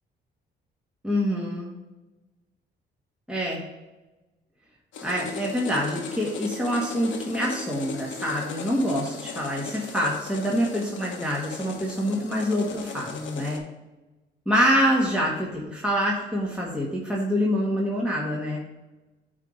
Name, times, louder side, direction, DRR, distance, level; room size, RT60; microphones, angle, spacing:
voice 1, 1.0-1.7 3.3-3.6 5.0-13.6 14.5-18.6, equal, 5° right, -4 dB, 1.7 m, -26 dB
sound 1, 4.9-13.6, left 5 dB, 75° left, 1.3 m, -37 dB
9.0 x 3.8 x 5.1 m, 1.1 s
cardioid pair, 90°, 20 cm